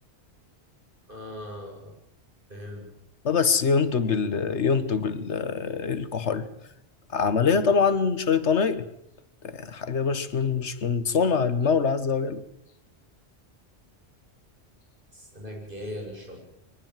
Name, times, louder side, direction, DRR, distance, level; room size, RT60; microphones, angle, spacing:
voice 1, 1.1-1.9 2.5-2.9 15.1-16.4, left 1 dB, 50° right, 1 dB, 7.5 m, -39 dB
voice 2, 3.2-6.5 7.1-8.8 9.4-12.4, left 5 dB, 90° left, 13 dB, 1.6 m, -24 dB
23.0 x 20.0 x 7.5 m, 0.77 s
omnidirectional pair, 1.1 m